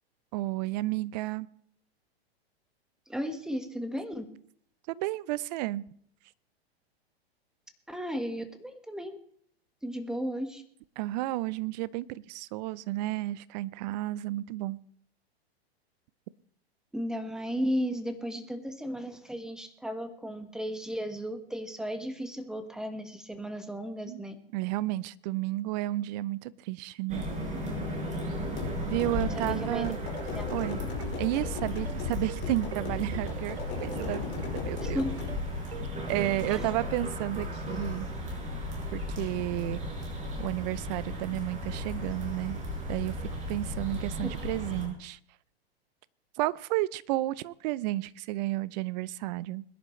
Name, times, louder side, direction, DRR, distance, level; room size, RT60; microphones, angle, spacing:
voice 1, 0.3-1.5 4.9-5.8 11.0-14.8 24.1-24.2 24.5-27.3 28.8-30.0 30.5-30.8 31.2-34.2 34.6-35.0 36.1-38.1 38.9-39.8 40.4-42.6 42.9-45.2 46.4-49.6, right 17 dB, 40° right, 0.7 m, -32 dB
voice 2, 3.1-4.2 7.9-9.2 9.8-10.6 16.9-24.3 29.5-29.9 30.3-30.5 34.8-35.1 36.5-36.6, equal, ahead, 1.5 m, -34 dB
sound 1, 27.1-44.9, left 1 dB, 20° right, 5.3 m, -35 dB
sound 2, 28.5-35.4, left 5 dB, 35° left, 5.0 m, -38 dB
sound 3, 29.7-36.7, right 8 dB, 75° right, 1.3 m, -45 dB
21.5 x 10.5 x 3.2 m
hypercardioid pair, 115°, 32 cm